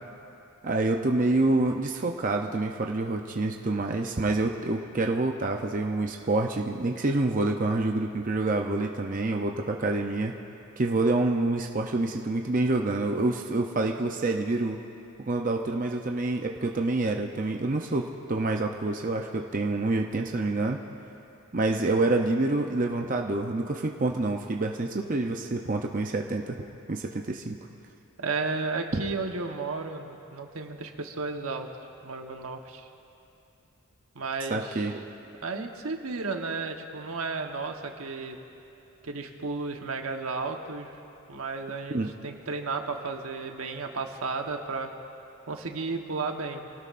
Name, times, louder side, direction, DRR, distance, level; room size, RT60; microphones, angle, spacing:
voice 1, 0.6-10.4 10.8-14.8 15.3-20.8 21.5-26.6 26.9-27.6 28.9-29.0 34.5-35.0 41.9-42.1, right 2 dB, 40° right, 2 dB, 0.6 m, -27 dB
voice 2, 28.2-31.7 32.0-32.9 34.1-34.9 35.4-38.4 39.0-40.9 41.3-44.9 45.5-46.6, right 3 dB, 80° right, 4 dB, 1.2 m, -33 dB
26.5 x 18.0 x 2.5 m, 2.8 s
head